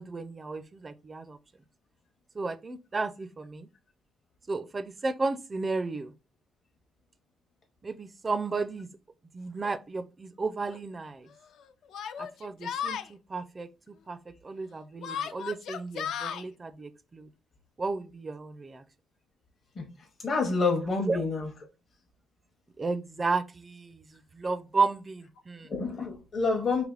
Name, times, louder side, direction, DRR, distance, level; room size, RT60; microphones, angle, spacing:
voice 1, 0.0-1.4 2.4-3.7 4.5-6.1 7.8-8.9 9.3-11.3 12.2-13.7 14.1-14.2 14.4-17.3 17.8-18.8 21.1-21.2 22.8-24.0 24.3-25.7, right 3 dB, 25° right, 0.4 m, -33 dB
Yell, 9.6-9.7 10.7-10.8 11.9-13.1 15.0-16.4, left 8 dB, 70° left, 0.4 m, -35 dB
voice 2, 20.2-21.5 25.7-26.8, left 4 dB, 35° left, 0.8 m, -28 dB
3.3 x 2.9 x 3.8 m
cardioid pair, 130°, 0 cm